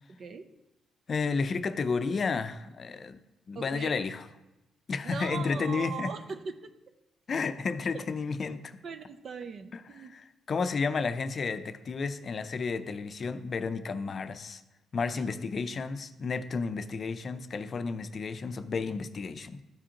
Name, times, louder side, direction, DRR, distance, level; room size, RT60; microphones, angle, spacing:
voice 1, 0.1-0.4 3.5-4.0 5.0-6.7 7.9-8.0 8.8-10.1 15.1-15.3, right 6 dB, 55° right, 9 dB, 0.5 m, -40 dB
voice 2, 1.1-3.2 3.5-4.2 4.9-6.1 7.3-8.8 9.7-14.6 14.9-19.6, left 4 dB, 45° left, 11 dB, 0.5 m, -32 dB
13.5 x 5.1 x 2.9 m, 0.97 s
cardioid pair, 90°, 0 cm